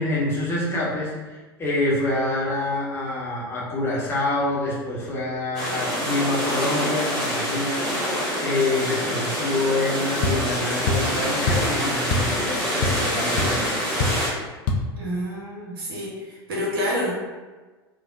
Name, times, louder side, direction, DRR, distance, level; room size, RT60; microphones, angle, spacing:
voice 1, 0.0-13.7, left 2 dB, 20° left, -6 dB, 0.9 m, -26 dB
sound 1, 5.5-14.3, equal, 5° left, 1.2 m, -26 dB
sound 2, 10.2-10.4 10.9-11.1 11.5-11.7 12.1-12.3 12.6-13.1 13.4-13.5 14.0-14.2 14.7-14.8, left 3 dB, 45° left, 0.4 m, -23 dB
voice 2, 15.0-17.1, equal, 65° right, -4 dB, 1.0 m, -28 dB
3.3 x 2.0 x 2.5 m, 1.3 s
figure-of-eight pair, 85°, 13 cm